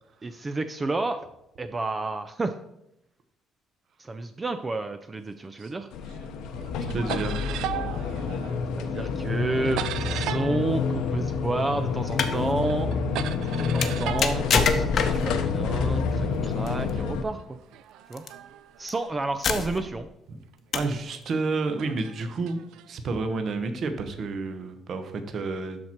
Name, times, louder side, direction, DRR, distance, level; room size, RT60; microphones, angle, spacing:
voice 1, 0.2-1.2 1.6-2.6 4.0-5.9 8.8-12.9 13.4-17.6 18.1-18.2 18.8-20.1, right 2 dB, 20° right, 9 dB, 0.4 m, -30 dB
sound 1, 5.6-6.3 6.6-11.9 12.2-15.4 16.2-19.7 20.4-20.5 21.5-22.9, right 11 dB, 80° right, 0.4 m, -38 dB
sound 2, 5.9-17.2, left 5 dB, 85° left, 0.8 m, -28 dB
voice 2, 6.8-7.4 20.3-20.4 20.7-22.6 22.9-25.8, right 3 dB, 45° right, 7 dB, 0.9 m, -30 dB
sound 3, 12.0-12.4 13.8-15.4 16.7-16.9 18.1-18.3 18.9-19.0 19.4-20.0 20.7-21.0, left 6 dB, 45° left, 0.8 m, -25 dB
12.0 x 4.4 x 4.4 m, 0.83 s
cardioid pair, 150°, 0 cm